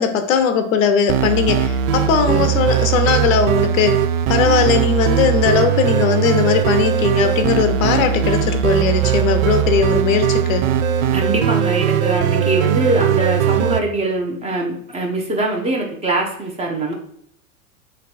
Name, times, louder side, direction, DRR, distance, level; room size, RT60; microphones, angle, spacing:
voice 1, 0.0-4.0 4.3-10.7, left 6 dB, 60° left, 8 dB, 0.7 m, -18 dB
sound 1, 1.1-13.8, right 9 dB, 65° right, 0.5 m, -19 dB
voice 2, 11.1-16.9, right 2 dB, 15° right, 0 dB, 0.7 m, -22 dB
3.2 x 2.9 x 4.1 m, 0.66 s
hypercardioid pair, 95°, 44 cm